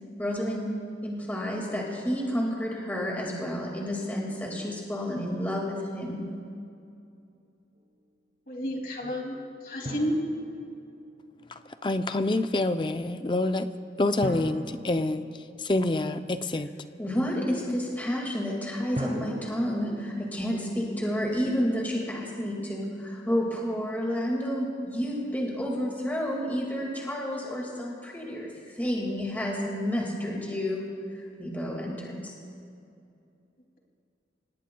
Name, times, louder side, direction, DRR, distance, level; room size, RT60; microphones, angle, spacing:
voice 1, 0.2-0.8 1.0-6.3 17.0-32.3, equal, 10° left, -2 dB, 2.0 m, -30 dB
voice 2, 8.5-9.3 9.6-10.2, equal, 50° left, 0 dB, 2.6 m, -30 dB
Drum, 9.8-11.3 14.2-16.0 19.0-20.6, equal, 40° right, 1.4 m, -38 dB
voice 3, 11.8-13.7 14.0-15.3 15.6-16.7, left 2 dB, 25° left, 9 dB, 0.5 m, -26 dB
28.5 x 18.5 x 2.3 m, 2.5 s
head